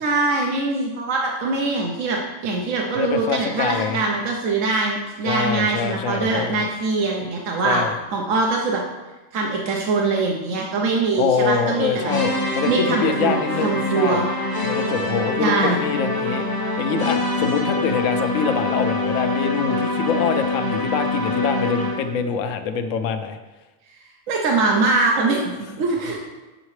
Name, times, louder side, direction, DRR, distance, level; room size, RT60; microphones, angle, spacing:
voice 1, 0.0-7.8 8.1-8.8 9.3-12.1 12.7-13.3 13.6-14.3 15.4-15.8 24.3-26.2, right 3 dB, 75° right, -1 dB, 1.2 m, -22 dB
voice 2, 2.9-4.0 5.3-6.6 7.6-7.9 11.2-14.2 14.6-16.4 16.8-23.4, left 6 dB, 80° left, 8 dB, 1.0 m, -24 dB
sound 1, 12.1-22.2, left 2 dB, 20° left, 1.1 m, -24 dB
7.2 x 6.6 x 3.2 m, 1.1 s
omnidirectional pair, 1.3 m